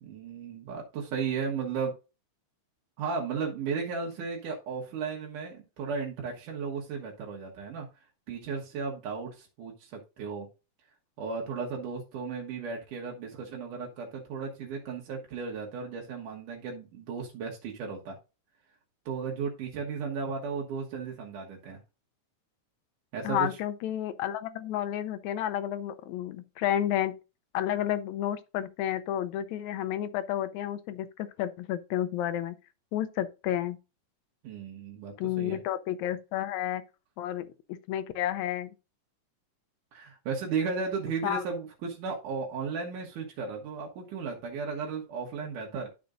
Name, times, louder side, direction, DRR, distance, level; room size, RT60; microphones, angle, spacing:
voice 1, 0.0-1.9 3.0-7.9 8.3-10.5 11.2-18.2 19.1-21.8 23.1-23.6 34.4-35.6 39.9-45.9, right 5 dB, 90° right, 3.0 m, -35 dB
voice 2, 23.2-27.2 27.5-32.6 32.9-33.8 35.2-36.8 37.2-38.7 41.2-41.4, left 11 dB, 80° left, 1.8 m, -31 dB
12.0 x 5.2 x 2.5 m
omnidirectional pair, 3.5 m